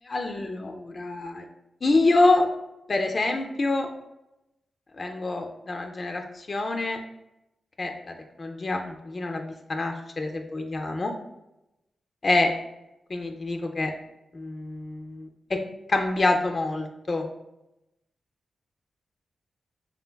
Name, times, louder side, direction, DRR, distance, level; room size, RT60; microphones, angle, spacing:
voice 1, 0.1-1.5 1.8-2.5 2.9-3.9 5.0-7.0 7.8-11.1 12.2-12.5 13.1-13.9 14.3-15.6 15.9-17.3, left 2 dB, 35° left, 3 dB, 0.3 m, -26 dB
4.4 x 3.7 x 2.2 m, 0.90 s
wide cardioid pair, 150°, 0 cm